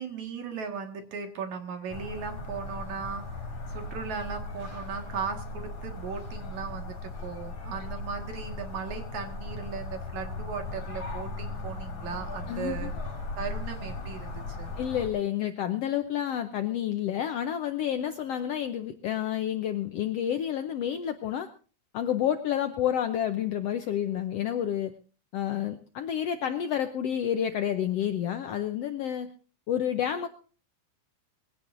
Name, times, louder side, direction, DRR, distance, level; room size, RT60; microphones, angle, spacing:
voice 1, 0.0-12.9 13.4-14.7, right 6 dB, 65° right, 5 dB, 3.0 m, -37 dB
sound 1, 1.9-15.1, left 2 dB, 45° left, 5.7 m, -37 dB
voice 2, 12.5-12.9 14.8-21.5 21.9-24.9 25.3-29.3 29.7-30.3, left 10 dB, 75° left, 8 dB, 1.5 m, -29 dB
21.5 x 16.5 x 2.6 m, 0.38 s
omnidirectional pair, 3.7 m